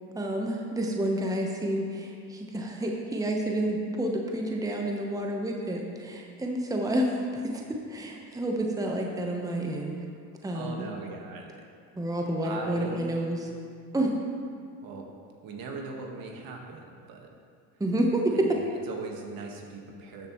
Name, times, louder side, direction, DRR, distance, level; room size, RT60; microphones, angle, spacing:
voice 1, 0.1-9.9 10.4-10.9 11.9-13.5 13.9-14.1 17.8-18.6, right 1 dB, 10° right, 1 dB, 1.0 m, -29 dB
voice 2, 10.5-11.7 12.4-13.2 14.8-15.1 15.4-17.3 18.5-20.3, right 4 dB, 55° right, 2 dB, 1.6 m, -39 dB
12.5 x 7.4 x 3.1 m, 2.2 s
supercardioid pair, 85°, 41 cm